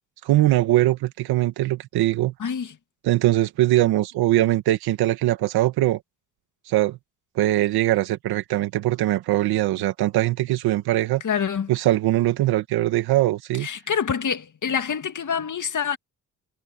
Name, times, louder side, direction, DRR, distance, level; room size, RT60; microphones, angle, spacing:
voice 1, 0.2-2.3 3.0-6.0 6.7-7.0 7.4-11.2 11.7-13.7, right 15 dB, 85° right, 1.9 m, -21 dB
voice 2, 2.4-2.7 11.2-11.7 13.6-16.0, left 7 dB, 55° left, 2.3 m, -26 dB
supercardioid pair, 50°, 37 cm